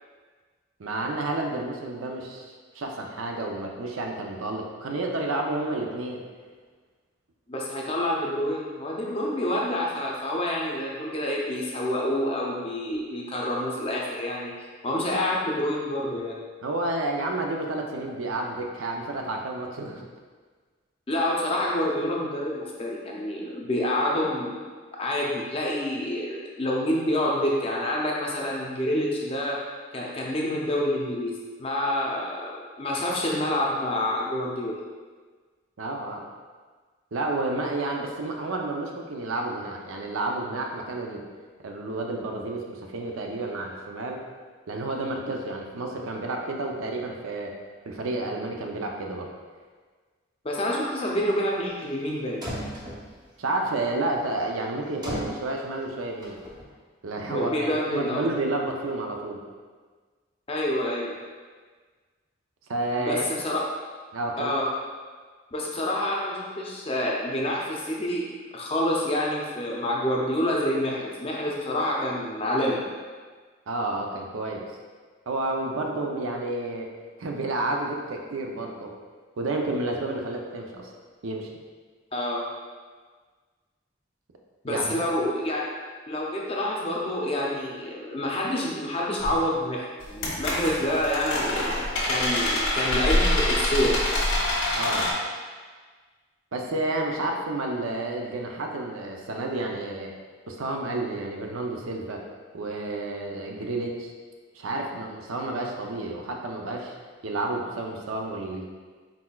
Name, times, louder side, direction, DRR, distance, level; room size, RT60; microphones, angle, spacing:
voice 1, 0.8-6.2 16.6-20.1 35.8-36.2 37.1-41.2 41.6-44.2 44.7-47.5 47.9-49.3 53.4-56.4 57.0-59.4 62.7-63.2 64.1-64.5 73.7-74.7 75.3-76.9 77.2-78.9 79.4-80.9 81.2-81.5 84.7-85.0 94.7-95.1 96.5-100.1 100.5-102.2 102.5-104.1 104.5-106.9 107.2-108.6, right 2 dB, 85° right, 1 dB, 0.5 m, -30 dB
voice 2, 7.5-16.4 21.1-29.6 29.9-34.8 50.4-52.4 57.3-58.3 60.5-61.1 63.0-63.6 64.4-64.7 65.5-68.3 68.5-72.8 82.1-82.5 84.6-85.7 86.1-91.7 92.1-94.0, left 1 dB, 30° left, -2 dB, 0.5 m, -27 dB
sound 1, 52.1-52.2 52.4-53.2 55.0-55.5 56.2-56.6, equal, 20° right, 0.6 m, -34 dB
sound 2, 89.2-89.4 90.0-95.1, left 1 dB, 80° left, 1.1 m, -25 dB
4.2 x 4.0 x 2.3 m, 1.5 s
head